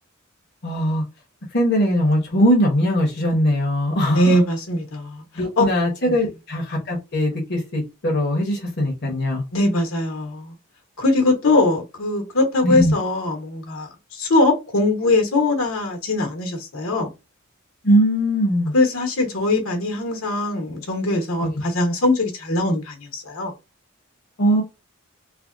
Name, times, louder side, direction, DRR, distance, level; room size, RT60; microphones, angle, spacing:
voice 1, 0.6-1.0 1.5-4.4 5.4-9.4 12.6-12.9 17.8-18.7 21.4-21.5 24.4-24.6, equal, 55° left, 0.9 m, -20 dB
voice 2, 4.1-5.2 5.6-5.7 6.1-6.2 9.5-10.5 11.0-17.1 18.7-23.5, left 2 dB, 80° left, 1.1 m, -21 dB
3.3 x 2.2 x 2.5 m
head